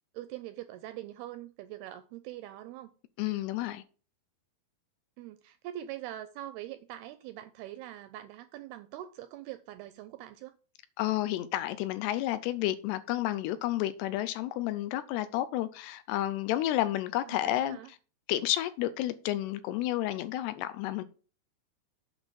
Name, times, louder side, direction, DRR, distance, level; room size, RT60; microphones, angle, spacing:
voice 1, 0.1-2.9 5.2-10.6 17.3-17.9, right 13 dB, 85° right, 2.3 m, -43 dB
voice 2, 3.2-3.8 11.0-17.8 18.3-21.0, left 14 dB, 80° left, 2.5 m, -31 dB
8.1 x 5.8 x 5.1 m
omnidirectional pair, 4.9 m